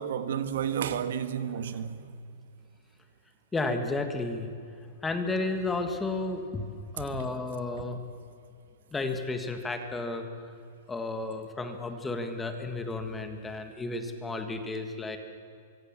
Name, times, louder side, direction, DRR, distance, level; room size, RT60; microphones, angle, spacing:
voice 1, 0.0-2.1, right 8 dB, 65° right, 1.7 m, -31 dB
voice 2, 3.5-4.5 5.0-6.6 6.9-8.0 8.9-10.5 10.9-15.2, left 3 dB, 5° left, 1.6 m, -32 dB
24.5 x 24.5 x 7.4 m
supercardioid pair, 175°, 0 cm